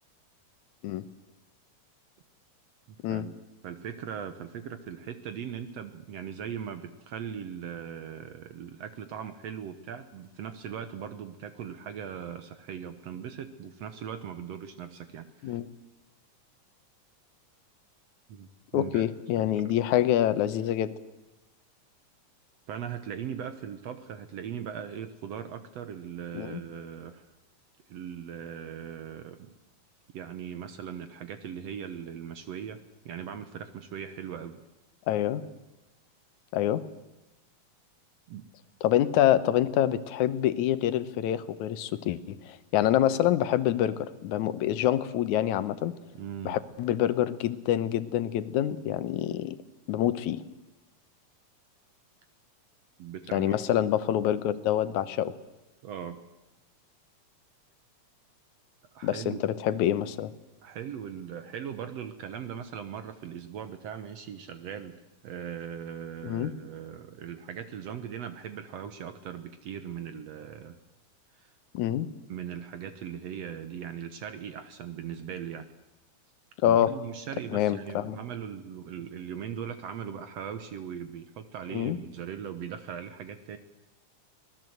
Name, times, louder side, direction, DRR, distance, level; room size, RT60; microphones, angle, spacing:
voice 1, 2.9-3.4 3.6-15.6 18.3-19.1 19.4-19.7 22.7-27.2 27.9-29.5 30.1-34.6 38.3-38.5 46.1-46.6 53.0-53.9 55.8-56.2 58.9-59.4 60.6-70.8 71.3-71.5 72.3-75.7 76.6-83.6, right 8 dB, 65° right, 10 dB, 1.9 m, -39 dB
voice 2, 18.7-20.9 26.3-26.6 35.1-35.4 36.5-36.8 38.8-45.9 46.4-49.6 49.9-50.4 53.3-55.3 59.0-60.3 66.2-66.5 71.7-72.1 76.6-76.9 77.5-78.2 81.7-82.0, left 11 dB, 75° left, 14 dB, 2.3 m, -26 dB
24.5 x 19.0 x 7.9 m, 1.0 s
omnidirectional pair, 3.5 m